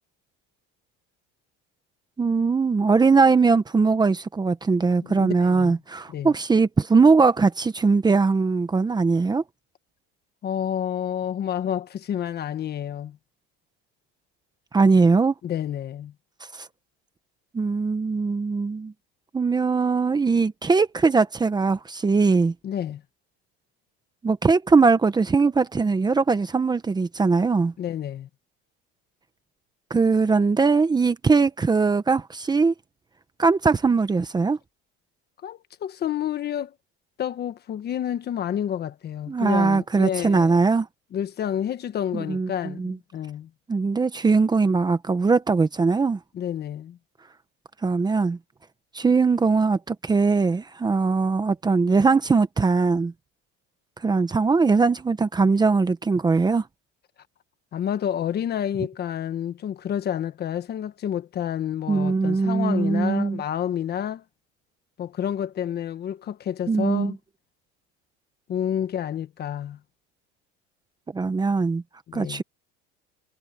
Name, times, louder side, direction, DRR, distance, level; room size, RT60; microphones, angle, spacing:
voice 1, 2.2-9.4 14.7-15.3 16.5-16.7 17.5-18.9 19.3-22.5 24.2-27.7 29.9-32.7 33.4-34.6 39.3-40.9 42.1-42.9 43.7-46.2 47.8-48.4 48.9-53.1 54.0-56.6 61.9-63.4 66.7-67.1 71.1-71.8 72.1-72.4, right 4 dB, 15° right, 1.1 m, -21 dB
voice 2, 5.0-5.8 6.1-6.3 10.4-13.2 15.4-16.1 22.6-23.0 27.8-28.3 35.4-36.7 37.2-40.6 41.1-43.5 46.3-47.0 57.7-64.2 65.0-67.2 68.5-69.8 72.1-72.4, left 9 dB, 35° left, 1.3 m, -29 dB
cardioid pair, 140°, 29 cm